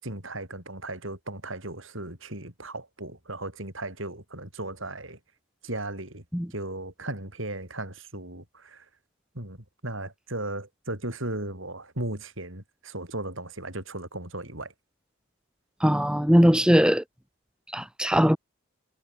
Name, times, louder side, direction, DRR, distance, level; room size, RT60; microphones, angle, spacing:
voice 1, 0.0-5.2 5.6-6.2 6.5-8.8 9.3-14.7, right 1 dB, 65° right, 7.6 m, -36 dB
voice 2, 15.8-17.0 17.7-18.4, equal, 5° right, 1.8 m, -20 dB
head